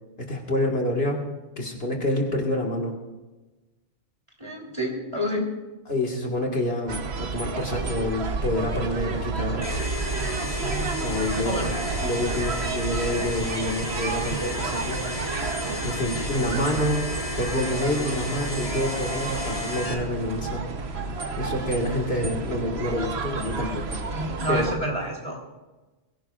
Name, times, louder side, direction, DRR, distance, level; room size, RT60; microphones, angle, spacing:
voice 1, 0.2-1.2 1.6-2.9 5.9-9.7 10.4-15.0 15.8-17.1 17.4-20.6 21.4-24.0 24.5-24.7, left 1 dB, 50° left, 1 dB, 2.0 m, -28 dB
voice 2, 4.4-5.5 11.4-11.7 16.1-16.3 24.1-25.4, equal, 20° right, -2 dB, 3.3 m, -29 dB
sound 1, 6.9-24.8, right 4 dB, 55° right, 1.2 m, -31 dB
sound 2, 9.6-19.9, left 1 dB, 30° left, 1.7 m, -33 dB
22.5 x 16.5 x 2.4 m, 1.1 s
omnidirectional pair, 1.3 m